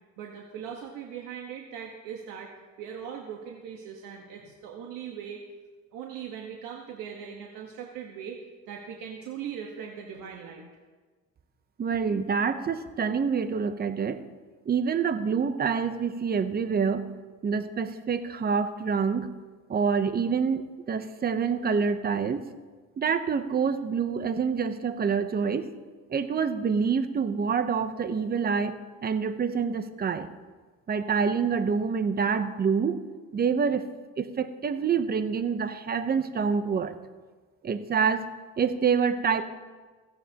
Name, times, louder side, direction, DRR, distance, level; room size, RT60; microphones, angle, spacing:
voice 1, 0.2-5.4 5.9-8.4 8.7-10.7, right 8 dB, 85° right, 0 dB, 1.4 m, -40 dB
voice 2, 11.8-14.2 14.7-17.1 17.4-19.3 19.7-22.4 23.0-25.6 26.1-30.3 30.9-33.0 33.3-33.9 34.2-37.0 37.6-38.3 38.6-39.4, right 6 dB, 30° right, 10 dB, 0.8 m, -27 dB
16.5 x 15.0 x 2.9 m, 1.4 s
cardioid pair, 135°, 32 cm